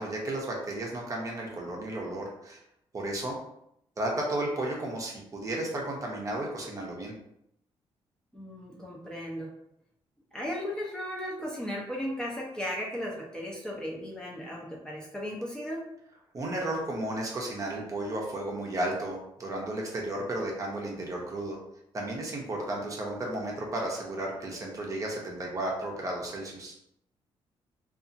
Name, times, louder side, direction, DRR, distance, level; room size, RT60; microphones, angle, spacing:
voice 1, 0.0-2.6 2.9-3.4 4.0-7.1 16.3-21.6 21.9-26.7, right 1 dB, 35° right, -1 dB, 0.7 m, -33 dB
voice 2, 8.3-9.5 10.3-15.8, equal, 5° left, -3 dB, 0.6 m, -36 dB
2.7 x 2.4 x 2.6 m, 0.77 s
cardioid pair, 105°, 10 cm